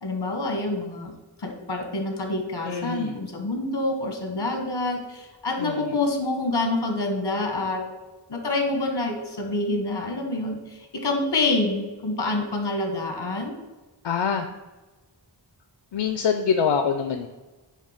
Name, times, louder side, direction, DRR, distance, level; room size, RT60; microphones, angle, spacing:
voice 1, 0.0-1.1 1.4-7.8 8.3-10.6 11.0-13.6, left 2 dB, 65° left, 3 dB, 1.4 m, -27 dB
voice 2, 2.7-3.1 5.6-5.9 14.0-14.5 15.9-17.3, left 6 dB, 85° left, 7 dB, 0.5 m, -25 dB
6.6 x 3.2 x 5.6 m, 1.2 s
wide cardioid pair, 60°, 44 cm